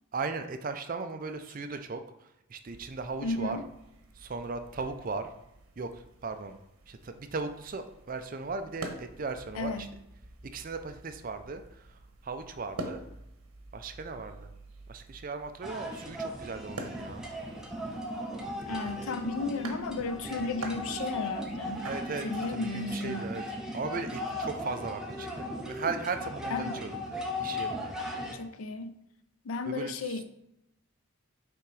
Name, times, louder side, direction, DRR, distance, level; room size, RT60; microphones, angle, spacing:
voice 1, 0.1-3.6 4.2-5.3 5.8-6.6 6.9-9.9 10.4-13.0 13.7-14.5 14.9-17.3 21.8-23.4 23.7-27.0 27.4-27.9 29.7-30.2, right 4 dB, 40° right, 8 dB, 0.4 m, -37 dB
sound 1, 2.7-22.4, right 2 dB, 85° right, 0.9 m, -47 dB
voice 2, 3.2-3.6 9.5-9.9 18.7-21.9 22.2-23.3 26.5-26.8 28.3-28.9 29.4-30.2, left 3 dB, 75° left, 10 dB, 0.5 m, -34 dB
sound 2, 15.6-28.3, left 1 dB, 5° right, 0.7 m, -37 dB
5.8 x 3.8 x 4.7 m, 0.84 s
head